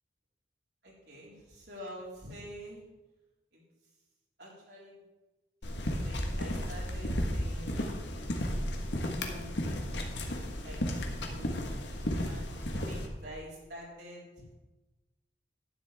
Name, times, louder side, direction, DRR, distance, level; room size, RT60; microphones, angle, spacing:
voice 1, 0.8-2.8 3.5-3.6 4.4-5.0 5.6-7.8 9.0-9.7 10.6-11.5 12.2-14.4, equal, 75° right, -5 dB, 4.2 m, -47 dB
sound 1, 5.6-13.1, equal, 90° left, 1.4 m, -34 dB
11.5 x 9.6 x 3.5 m, 1.1 s
head